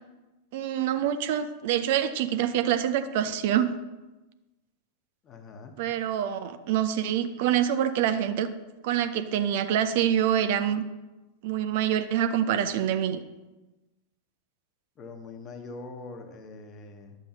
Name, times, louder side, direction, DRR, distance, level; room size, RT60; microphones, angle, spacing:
voice 1, 0.5-3.7 5.8-8.5 8.8-10.8 11.4-13.2, right 10 dB, 50° right, 9 dB, 0.5 m, -26 dB
voice 2, 5.2-5.8 15.0-17.2, left 3 dB, 30° left, 5 dB, 1.1 m, -43 dB
11.0 x 7.1 x 2.9 m, 1.1 s
figure-of-eight pair, 90°, 0 cm